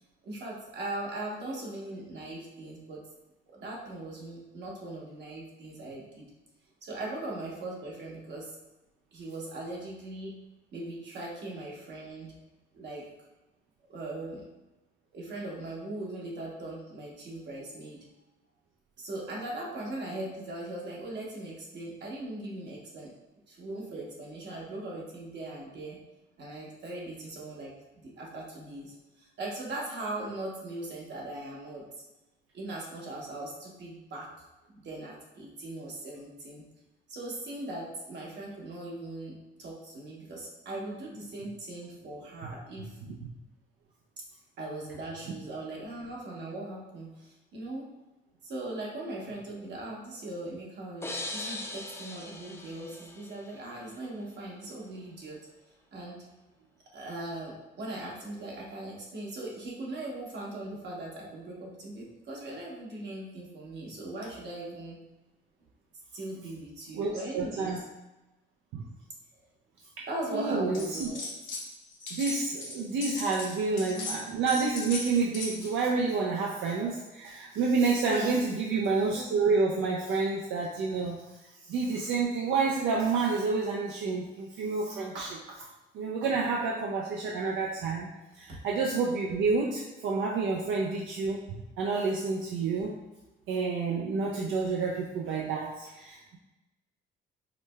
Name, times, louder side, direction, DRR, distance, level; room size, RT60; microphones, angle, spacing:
voice 1, 0.2-3.0 3.5-6.3 6.8-8.6 9.1-10.4 10.7-12.3 12.7-13.1 13.9-14.4 15.1-18.0 19.0-23.1 23.5-26.0 26.4-31.8 32.5-34.3 34.8-36.6 37.1-43.0 44.6-47.9 48.4-55.4 55.9-56.2 56.9-65.0 66.1-67.8 70.1-71.3 78.0-78.4 88.5-88.6, right 2 dB, 60° right, -3 dB, 1.0 m, -39 dB
sound 1, 51.0-53.8, left 2 dB, 15° left, 0.3 m, -40 dB
voice 2, 66.9-67.8 68.7-68.9 70.3-71.1 72.1-81.2 81.7-85.7 85.9-88.1 88.3-91.4 91.8-92.9 93.5-96.4, right 4 dB, 85° right, -2 dB, 0.4 m, -29 dB
sound 2, 70.7-71.7 71.9-75.8, left 2 dB, 75° left, 1.2 m, -38 dB
4.8 x 2.1 x 2.2 m, 1.0 s
cardioid pair, 90°, 20 cm